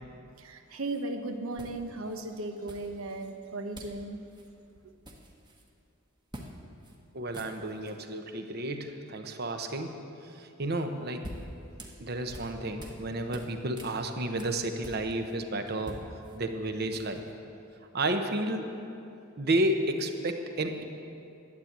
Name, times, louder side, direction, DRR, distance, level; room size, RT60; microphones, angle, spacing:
voice 1, 0.4-4.2, right 2 dB, 80° right, 6 dB, 1.0 m, -36 dB
sound 1, 0.9-1.0 1.6-2.2 2.7-3.3 3.7-4.0 4.3-4.5 4.8-5.7 6.3-6.5 6.8-7.0 7.2-7.9 10.8-13.0 13.3-15.3 15.7-17.3, equal, 20° right, 1.2 m, -46 dB
voice 2, 7.1-10.0 10.4-11.3 12.0-16.0 16.3-17.2 17.9-18.7 19.4-20.8, right 1 dB, 50° right, 6 dB, 1.0 m, -31 dB
12.0 x 8.9 x 8.2 m, 2.7 s
head